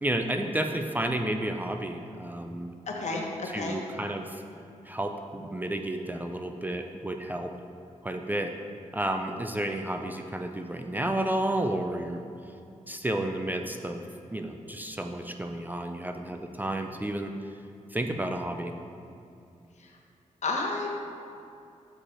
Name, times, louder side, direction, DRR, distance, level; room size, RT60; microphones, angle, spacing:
voice 1, 0.0-2.7 3.4-4.4 4.9-7.5 8.0-8.5 8.9-12.2 12.9-14.0 14.3-17.3 17.9-18.7, right 1 dB, 15° right, 4 dB, 0.4 m, -31 dB
voice 2, 2.9-3.8 20.4-20.9, left 3 dB, 65° left, 0 dB, 1.0 m, -31 dB
6.6 x 4.9 x 4.3 m, 2.6 s
cardioid pair, 85°, 13 cm